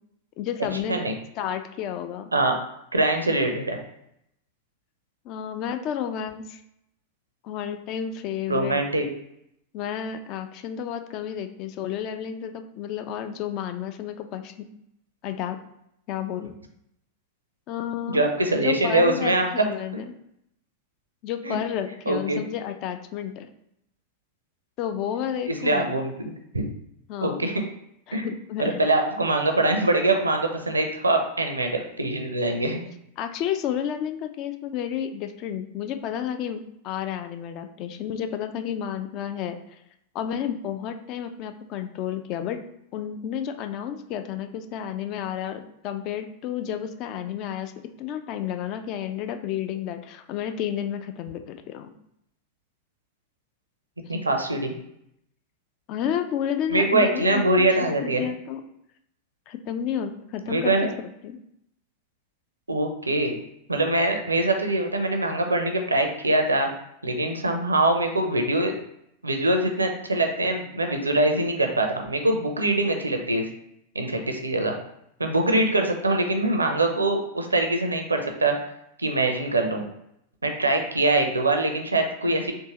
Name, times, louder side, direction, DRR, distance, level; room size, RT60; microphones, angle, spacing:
voice 1, 0.4-1.0 1.4-2.3 5.3-6.6 7.4-8.8 9.7-14.5 15.2-15.6 16.1-16.5 17.7-18.3 18.6-20.1 21.2-23.5 24.8-25.9 27.1-27.5 28.1-28.8 33.2-39.6 40.1-42.6 42.9-47.7 48.0-51.9 55.9-58.6 59.5-61.4, left 9 dB, 40° left, 8 dB, 0.3 m, -31 dB
voice 2, 2.9-3.8 8.5-9.1 18.1-19.7 21.4-21.6 22.1-22.4 25.5-26.7 27.2-27.6 28.1-28.3 28.6-32.8 54.1-54.7 56.7-58.2 60.5-60.9 62.7-63.3 63.7-66.7 67.0-68.7 69.2-73.5 73.9-74.7 75.2-78.5 79.0-79.8 80.4-82.5, right 2 dB, 80° right, 4 dB, 0.5 m, -23 dB
3.5 x 2.7 x 2.9 m, 0.77 s
figure-of-eight pair, 90°, 0 cm